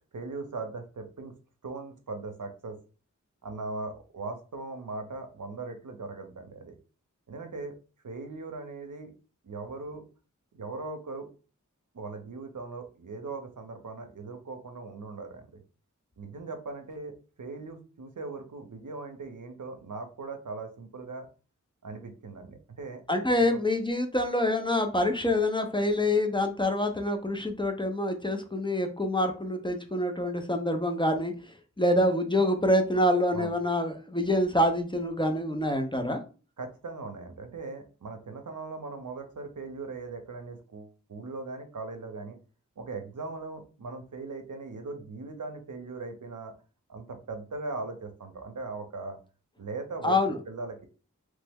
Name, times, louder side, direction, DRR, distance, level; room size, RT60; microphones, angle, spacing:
voice 1, 0.1-1.3 1.6-2.8 3.4-6.7 7.3-7.7 8.0-9.1 9.4-10.0 10.5-11.3 11.9-15.6 16.2-21.3 21.8-23.0 33.3-33.5 36.6-42.4 42.8-46.5 46.9-49.2 49.6-50.2 50.5-50.9, right 3 dB, 75° right, 5 dB, 0.7 m, -39 dB
voice 2, 23.1-31.3 31.8-36.2 50.0-50.4, left 1 dB, 15° left, 5 dB, 0.6 m, -26 dB
3.1 x 2.0 x 3.5 m, 0.35 s
wide cardioid pair, 45°, 31 cm